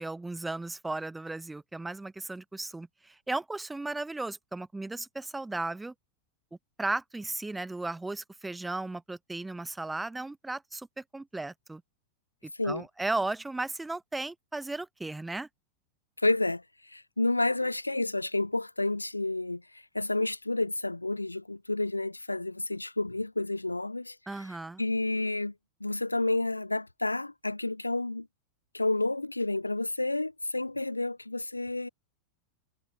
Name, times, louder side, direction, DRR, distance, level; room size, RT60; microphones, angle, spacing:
voice 1, 0.0-5.9 6.8-11.8 12.6-15.5 24.3-24.8, right 2 dB, 10° right, 1.5 m, -35 dB
voice 2, 16.2-24.2 24.8-25.5 25.8-28.3 28.7-31.9, left 2 dB, 90° left, 1.2 m, -30 dB
figure-of-eight pair, 90°, 0 cm